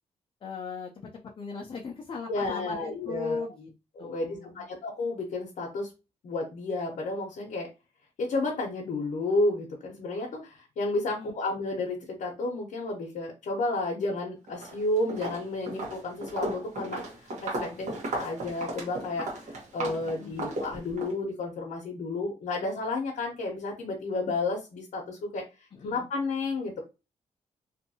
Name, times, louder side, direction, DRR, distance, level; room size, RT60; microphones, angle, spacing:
voice 1, 0.4-0.9 1.4-3.7 4.0-4.6 11.2-11.3 17.5-17.8 20.0-20.5 25.7-26.1, left 4 dB, 40° left, 1 dB, 0.5 m, -38 dB
voice 2, 2.3-3.4 4.0-5.9 6.2-7.7 8.2-17.0 17.4-17.9 18.1-25.4 25.8-26.8, left 2 dB, 75° left, 0 dB, 0.8 m, -31 dB
Walk footsteps, 14.5-14.8 15.1-21.1, right 1 dB, 65° right, 1.2 m, -35 dB
2.7 x 2.5 x 2.7 m, 0.28 s
wide cardioid pair, 125°, 13 cm